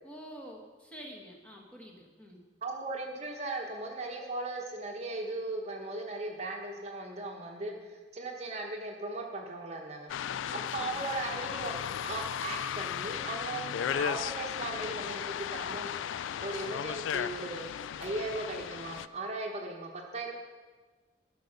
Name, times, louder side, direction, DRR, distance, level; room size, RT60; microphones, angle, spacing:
voice 1, 0.0-2.4 10.5-11.0, equal, 5° left, -1 dB, 1.2 m, -48 dB
voice 2, 2.6-10.1 10.5-11.7 12.0-15.9 16.4-17.6 18.0-20.3, right 2 dB, 35° right, 1 dB, 1.0 m, -37 dB
sound 1, 10.1-19.1, left 9 dB, 85° left, 0.3 m, -35 dB
12.5 x 5.2 x 6.5 m, 1.4 s
head